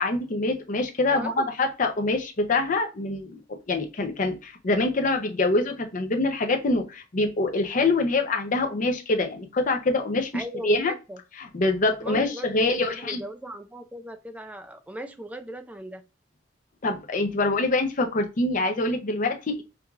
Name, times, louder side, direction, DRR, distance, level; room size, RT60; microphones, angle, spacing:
voice 1, 0.0-3.4 3.7-10.9 11.5-13.2 16.8-19.6, left 2 dB, 45° left, 5 dB, 0.6 m, -25 dB
voice 2, 1.1-1.5 10.3-11.2 12.0-16.0, right 1 dB, 10° right, 7 dB, 0.4 m, -38 dB
4.6 x 2.5 x 2.4 m, 0.29 s
head